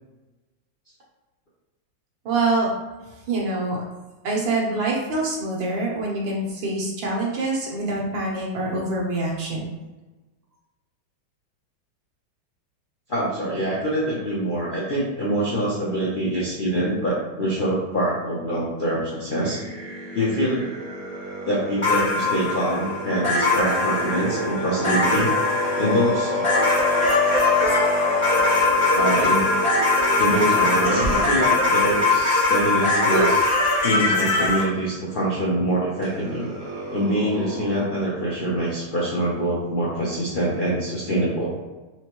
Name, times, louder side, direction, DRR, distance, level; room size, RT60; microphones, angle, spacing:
voice 1, 2.2-2.7 3.3-3.8 4.2-9.7, right 2 dB, 85° right, -3 dB, 1.8 m, -25 dB
voice 2, 13.1-19.6 20.1-20.7 21.4-25.3 25.8-26.4 28.9-29.5 30.2-33.4 33.8-36.5 36.9-41.6, right 1 dB, 60° left, -7 dB, 0.5 m, -25 dB
sound 1, 19.4-32.2 33.1-33.3 33.9-34.3 36.0-37.9, left 1 dB, 55° right, 1.2 m, -28 dB
sound 2, 21.8-34.6, left 3 dB, 20° left, 1.0 m, -21 dB
4.4 x 3.4 x 3.0 m, 1.2 s
omnidirectional pair, 2.0 m